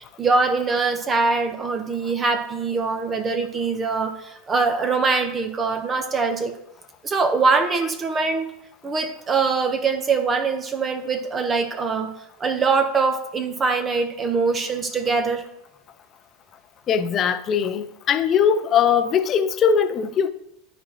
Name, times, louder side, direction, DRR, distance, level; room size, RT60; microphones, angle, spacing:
voice 1, 0.2-6.5 7.0-8.5 8.8-12.1 12.4-15.4, right 4 dB, 30° right, 6 dB, 1.3 m, -23 dB
voice 2, 16.9-20.3, left 7 dB, 40° left, 10 dB, 0.7 m, -20 dB
12.5 x 4.3 x 3.2 m, 0.81 s
hypercardioid pair, 90°, 0 cm